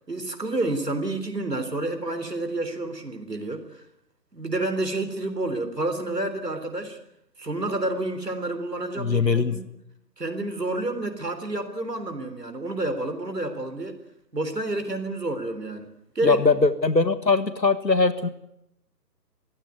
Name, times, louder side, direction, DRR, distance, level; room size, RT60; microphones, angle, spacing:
voice 1, 0.1-3.8 4.3-7.0 7.4-9.6 10.2-14.0 14.3-16.4, right 2 dB, 75° right, 8 dB, 3.7 m, -29 dB
voice 2, 9.0-9.6 16.2-18.3, left 4 dB, 90° left, 13 dB, 1.6 m, -21 dB
24.5 x 15.0 x 9.5 m, 0.80 s
figure-of-eight pair, 150°, 49 cm